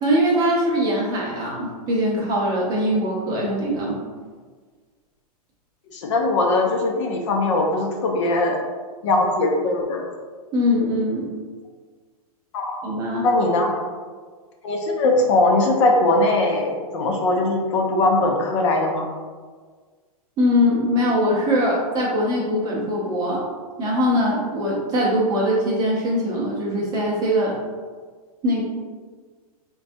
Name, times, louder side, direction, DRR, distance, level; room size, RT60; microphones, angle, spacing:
voice 1, 0.0-4.0 10.5-11.3 12.8-13.3 20.4-23.4 23.8-27.6 28.4-28.6, equal, 20° right, -5 dB, 0.6 m, -22 dB
voice 2, 5.9-8.6 9.0-10.0 12.5-12.8 13.2-13.8 14.6-19.0, left 2 dB, 50° left, 1 dB, 0.5 m, -20 dB
3.9 x 2.2 x 2.6 m, 1.5 s
supercardioid pair, 160°, 20 cm